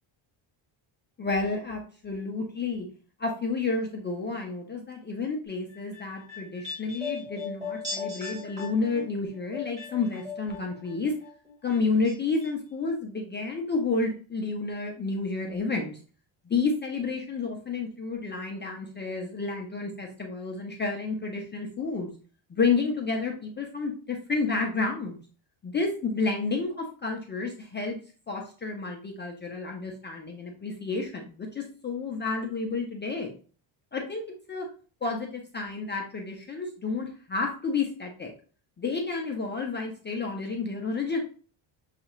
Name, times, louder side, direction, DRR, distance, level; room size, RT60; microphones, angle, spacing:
voice 1, 1.2-2.9 3.2-11.1 11.6-16.0 16.5-22.1 22.5-25.2 25.6-28.0 28.3-33.3 33.9-34.2 34.5-34.7 35.0-38.3 38.8-41.2, left 4 dB, 25° left, 0 dB, 0.4 m, -30 dB
sound 1, 5.7-10.9 11.2-12.1 12.4-12.5, left 4 dB, 15° right, 1.7 m, -38 dB
6.4 x 2.4 x 2.9 m, 0.41 s
cardioid pair, 170°, 49 cm